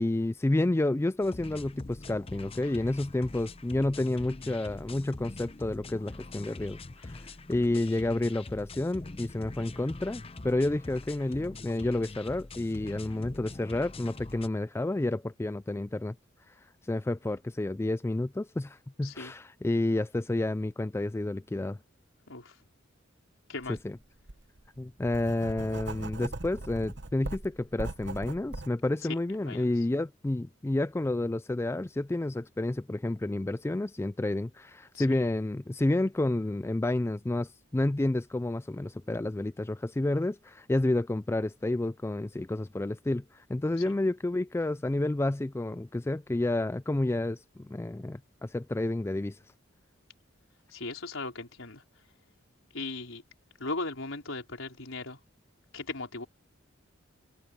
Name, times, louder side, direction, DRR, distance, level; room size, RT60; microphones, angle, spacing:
voice 1, 0.0-6.8 7.0-16.2 16.9-21.8 23.8-24.0 24.8-49.4, left 2 dB, 15° left, 0.3 m, -30 dB
sound 1, 1.2-14.5, left 2 dB, 30° left, 0.8 m, -44 dB
voice 2, 19.0-19.3 22.3-22.6 23.5-23.8 29.0-29.1 29.4-29.6 34.9-35.2 50.7-51.8 52.7-53.2 53.6-55.2 55.7-56.3, left 3 dB, 75° left, 4.3 m, -37 dB
Writing, 23.6-23.8 24.3-28.7, right 2 dB, 60° right, 1.3 m, -40 dB
head